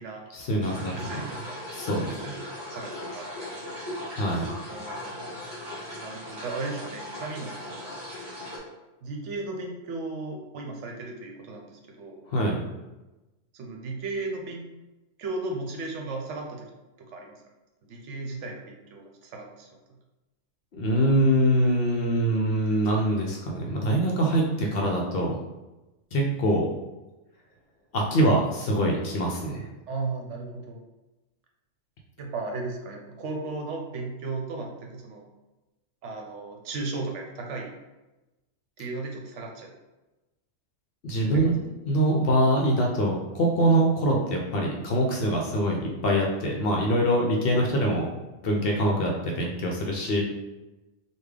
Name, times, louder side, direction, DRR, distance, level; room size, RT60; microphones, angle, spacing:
voice 1, 0.3-0.9 1.7-2.1 4.1-4.5 12.3-12.6 20.7-25.4 26.1-26.7 27.9-29.7 41.0-48.1 48.4-50.2, right 1 dB, 60° left, -1 dB, 0.7 m, -24 dB
sound 1, 0.6-8.6, left 1 dB, 40° right, 1.3 m, -38 dB
voice 2, 0.9-1.6 2.1-3.8 4.7-5.2 6.0-7.9 9.0-12.2 13.5-14.6 15.2-16.7 17.1-17.4 17.9-19.7 29.9-30.8 32.2-35.3 36.0-37.7 38.8-39.7 41.3-41.5, right 3 dB, 75° right, 1 dB, 0.9 m, -35 dB
3.5 x 2.3 x 3.2 m, 1.0 s
omnidirectional pair, 1.3 m